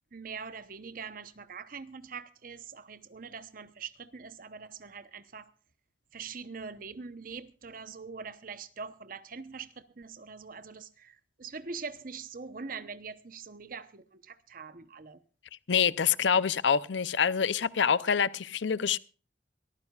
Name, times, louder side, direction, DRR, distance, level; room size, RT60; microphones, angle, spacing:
voice 1, 0.1-5.5 6.1-15.2, right 5 dB, 50° right, 0.9 m, -43 dB
voice 2, 15.7-19.0, left 7 dB, 85° left, 0.6 m, -26 dB
23.0 x 14.0 x 2.4 m
head